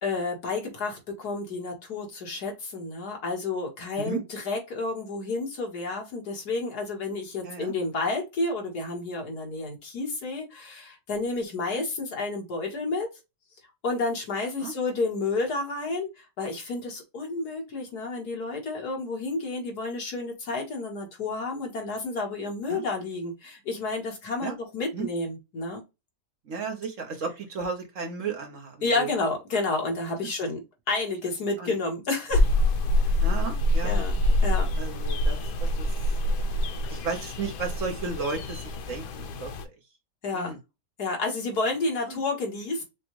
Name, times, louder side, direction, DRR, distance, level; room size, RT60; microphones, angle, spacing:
voice 1, 0.0-13.1 13.8-25.8 28.8-30.6 30.9-32.4 33.0-33.3 33.8-34.7 40.2-40.5 41.0-42.8, left 3 dB, 70° left, 2.1 m, -30 dB
voice 2, 26.5-29.1 31.6-31.7 33.2-34.0 34.8-35.9 36.9-39.5 40.3-40.6 42.0-42.2, right 4 dB, 55° right, 1.3 m, -34 dB
sound 1, 32.3-39.6, left 1 dB, 90° left, 1.4 m, -25 dB
6.1 x 2.4 x 3.1 m
omnidirectional pair, 1.8 m